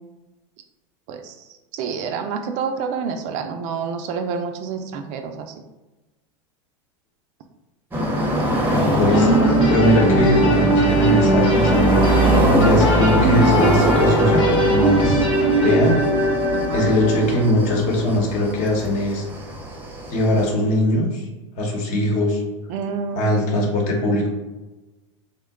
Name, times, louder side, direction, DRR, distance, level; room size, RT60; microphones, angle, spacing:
voice 1, 1.7-5.5 16.5-16.9 22.7-23.3, right 6 dB, 50° right, 5 dB, 0.4 m, -28 dB
sound 1, 7.9-20.5, right 1 dB, 10° right, 0.7 m, -23 dB
voice 2, 8.6-9.3 9.7-12.3 12.6-15.3 15.6-16.0 16.7-19.2 20.1-21.2 21.6-22.4 23.1-24.3, left 1 dB, 50° left, 0 dB, 1.0 m, -20 dB
sound 2, 9.1-18.1, right 1 dB, 85° left, 1.1 m, -19 dB
3.0 x 2.2 x 3.5 m, 1.1 s
hypercardioid pair, 110°, 16 cm